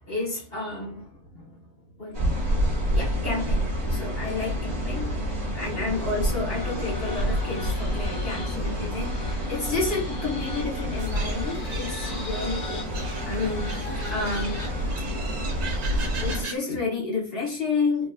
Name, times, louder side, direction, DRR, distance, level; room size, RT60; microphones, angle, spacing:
voice 1, 0.1-1.5 2.0-2.4 2.9-5.2 5.5-9.2 9.5-12.9 13.2-13.7 14.1-14.6 15.9-18.1, left 3 dB, 40° left, 1.6 m, -31 dB
sound 1, 2.1-16.4, equal, 30° right, 1.5 m, -28 dB
sound 2, 6.3-15.0, left 2 dB, 60° left, 1.7 m, -40 dB
sound 3, 11.0-16.5, right 3 dB, 45° right, 0.5 m, -39 dB
4.4 x 3.1 x 2.5 m
omnidirectional pair, 1.6 m